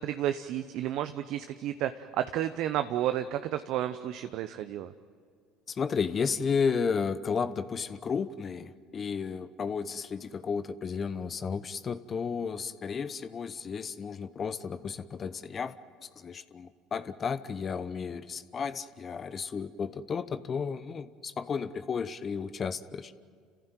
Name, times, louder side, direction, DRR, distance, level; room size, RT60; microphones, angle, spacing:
voice 1, 0.0-4.9, right 12 dB, 65° right, 10 dB, 0.7 m, -31 dB
voice 2, 5.7-23.1, left 6 dB, 40° left, 13 dB, 0.9 m, -33 dB
29.5 x 15.0 x 9.0 m, 2.1 s
hypercardioid pair, 70°, 0 cm